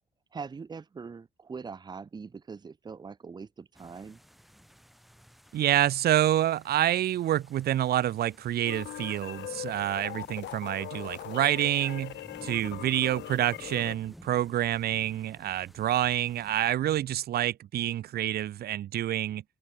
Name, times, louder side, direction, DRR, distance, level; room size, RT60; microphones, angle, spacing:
voice 1, 0.3-4.2, right 5 dB, 20° right, 1.5 m, -42 dB
sound 1, 3.7-16.7, equal, ahead, 6.9 m, -55 dB
voice 2, 5.5-12.2 12.4-19.4, right 12 dB, 55° right, 1.1 m, -27 dB
sound 2, 8.6-14.0, left 13 dB, 70° left, 3.7 m, -40 dB
cardioid pair, 165°, 19 cm